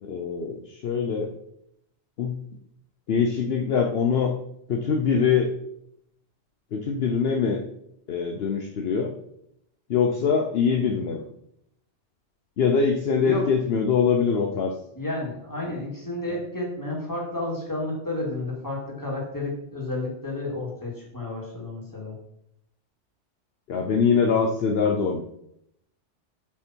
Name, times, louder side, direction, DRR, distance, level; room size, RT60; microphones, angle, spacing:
voice 1, 0.0-1.3 2.2-2.4 3.1-4.3 4.7-5.5 6.7-7.6 8.1-9.1 9.9-11.2 12.6-14.7 16.3-16.4 23.7-25.2, left 6 dB, 60° left, 3 dB, 0.9 m, -23 dB
voice 2, 15.0-22.2, left 1 dB, 15° left, -3 dB, 2.7 m, -31 dB
8.3 x 6.1 x 4.5 m, 0.76 s
omnidirectional pair, 1.2 m